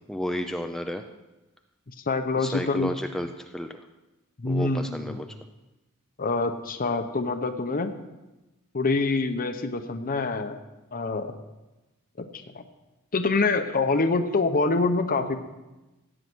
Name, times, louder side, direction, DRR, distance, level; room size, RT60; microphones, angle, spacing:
voice 1, 0.1-1.0 2.3-3.8 4.4-5.3, equal, ahead, 5 dB, 0.5 m, -32 dB
voice 2, 2.1-2.9 4.4-5.2 6.2-7.9 8.7-10.6 10.9-11.3 12.2-12.6 13.1-15.4, left 3 dB, 40° left, 7 dB, 0.8 m, -25 dB
16.0 x 8.9 x 6.1 m, 1.1 s
head